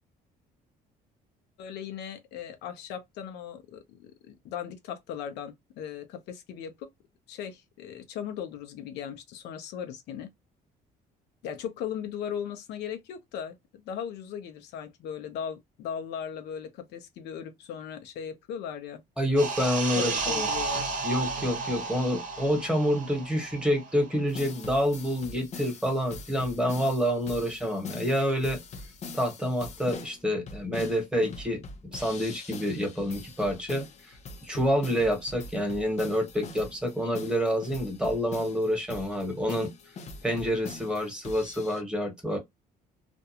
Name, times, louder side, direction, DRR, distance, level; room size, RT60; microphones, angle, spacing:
voice 1, 1.6-6.9 7.3-10.3 11.4-13.6 13.9-19.0 20.0-20.9, left 8 dB, 80° left, 0.6 m, -38 dB
voice 2, 19.2-20.5 21.0-28.6 29.1-33.8 34.4-39.7 40.2-42.4, equal, 5° right, 1.2 m, -28 dB
sound 1, 19.4-24.4 24.7-24.9, right 4 dB, 50° right, 0.9 m, -33 dB
sound 2, 24.3-41.8, left 3 dB, 40° left, 0.6 m, -43 dB
2.5 x 2.2 x 2.8 m
cardioid pair, 110°, 17 cm